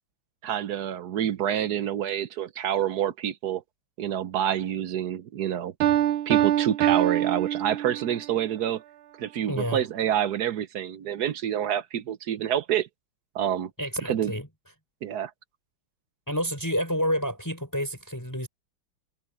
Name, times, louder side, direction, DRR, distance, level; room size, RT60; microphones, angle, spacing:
voice 1, 0.4-3.6 4.0-5.7 6.3-8.8 9.2-12.9 13.3-13.7 14.1-14.3 15.0-15.3, right 10 dB, 60° right, 1.1 m, -27 dB
Piano, 5.8-8.3, right 12 dB, 80° right, 1.5 m, -24 dB
voice 2, 9.5-9.8 13.8-14.5 16.3-18.5, equal, 10° left, 6.0 m, -29 dB
omnidirectional pair, 2.3 m